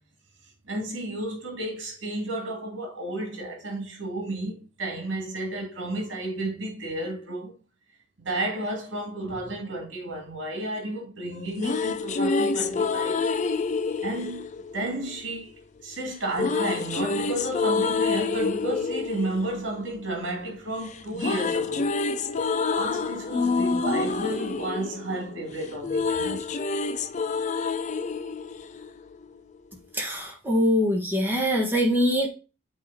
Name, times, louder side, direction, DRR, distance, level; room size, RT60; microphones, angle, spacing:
voice 1, 0.7-7.6 8.2-13.2 14.0-14.5 14.7-15.5 15.8-21.9 22.7-26.4, right 1 dB, 65° right, 2.4 m, -32 dB
sound 1, 11.3-15.5 16.3-20.6 20.9-29.4, left 4 dB, 40° left, 0.4 m, -28 dB
voice 2, 29.9-32.3, equal, 10° right, 1.4 m, -23 dB
8.4 x 3.2 x 4.2 m
head